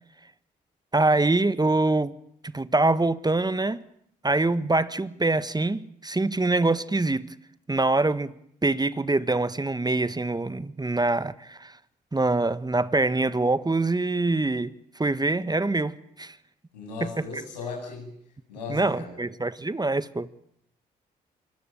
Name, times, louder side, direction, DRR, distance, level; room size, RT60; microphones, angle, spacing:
voice 1, 0.9-2.1 2.5-3.8 4.2-7.3 7.7-8.3 8.6-11.7 12.1-14.7 15.0-16.4 17.0-17.3 18.7-20.3, right 2 dB, 20° right, 1.5 m, -24 dB
voice 2, 16.7-18.1 18.5-19.2, left 4 dB, 90° left, 7.8 m, -37 dB
26.5 x 24.0 x 9.1 m
hypercardioid pair, 40°, 21 cm